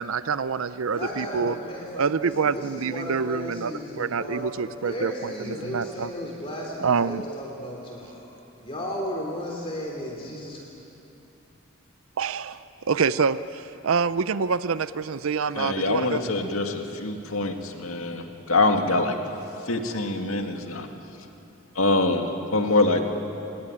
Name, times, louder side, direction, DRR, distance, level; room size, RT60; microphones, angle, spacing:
voice 1, 0.0-1.6 2.0-6.1 6.8-7.2 12.2-12.6 12.8-16.2, right 5 dB, 85° right, 15 dB, 0.6 m, -26 dB
voice 2, 0.9-8.2 8.6-10.6, equal, 25° left, -1 dB, 3.2 m, -34 dB
voice 3, 15.6-19.2 19.6-20.9 21.7-23.0, left 2 dB, 90° left, 4 dB, 2.1 m, -24 dB
24.5 x 19.5 x 10.0 m, 2.9 s
head